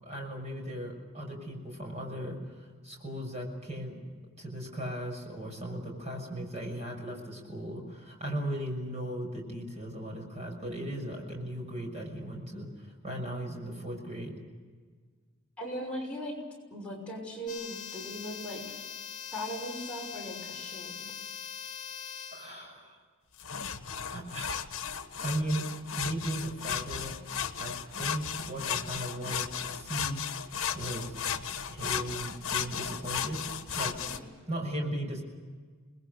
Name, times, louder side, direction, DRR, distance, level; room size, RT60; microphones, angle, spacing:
voice 1, 0.0-4.0 4.4-14.4 22.3-23.0 24.1-24.5 25.2-25.6 26.0-27.2 27.6-30.2 30.7-31.2 31.7-34.0 34.5-35.2, right 1 dB, 30° right, 1 dB, 6.3 m, -37 dB
voice 2, 15.6-16.3 16.7-18.8 19.3-21.1 34.0-34.3, equal, 5° left, -4 dB, 6.1 m, -39 dB
sound 1, 17.5-22.6, left 7 dB, 40° left, 6.7 m, -42 dB
sound 2, 23.4-34.2, left 8 dB, 60° left, 1.3 m, -35 dB
29.0 x 20.5 x 6.8 m, 1.5 s
head